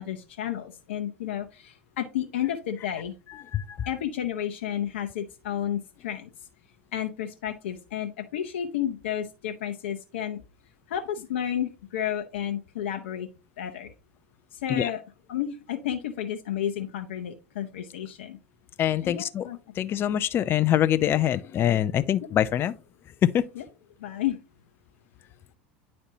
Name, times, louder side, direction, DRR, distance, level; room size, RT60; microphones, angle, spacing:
voice 1, 0.0-3.1 3.9-6.3 6.9-10.4 10.9-13.3 13.6-13.9 14.5-15.0 15.3-18.4 19.0-19.6 23.6-23.7 24.0-24.4, left 10 dB, 75° left, 0.6 m, -31 dB
voice 2, 3.5-3.9 14.7-14.9 18.8-19.5 19.8-22.7 23.2-23.4, left 11 dB, 35° left, 0.4 m, -24 dB
9.5 x 4.3 x 2.7 m
hypercardioid pair, 85°, 6 cm